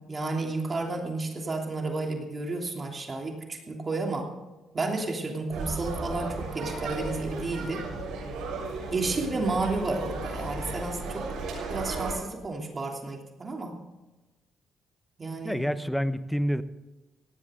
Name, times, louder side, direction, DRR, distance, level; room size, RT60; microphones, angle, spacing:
voice 1, 0.1-4.3 4.7-7.8 8.9-11.3 11.7-13.8 15.2-15.6, right 3 dB, 35° right, 1 dB, 3.0 m, -31 dB
sound 1, 5.5-12.1, right 3 dB, 85° right, 6.7 m, -35 dB
voice 2, 15.4-16.6, equal, ahead, 12 dB, 0.9 m, -28 dB
18.0 x 15.5 x 3.8 m, 1.1 s
cardioid pair, 90°, 0 cm